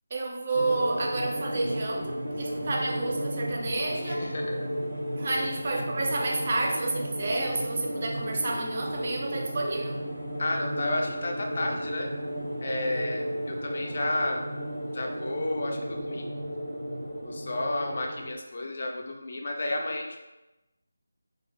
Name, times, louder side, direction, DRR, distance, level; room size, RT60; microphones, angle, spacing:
voice 1, 0.1-4.2 5.2-10.0, right 2 dB, 35° right, 0 dB, 0.4 m, -30 dB
sound 1, 0.5-18.3, equal, 80° right, 0.7 m, -34 dB
voice 2, 4.0-4.7 5.3-5.4 10.4-12.1 12.6-14.5 14.9-16.3 17.2-20.2, left 2 dB, 40° left, 1 dB, 0.4 m, -32 dB
2.3 x 2.2 x 3.2 m, 1.0 s
figure-of-eight pair, 175°, 0 cm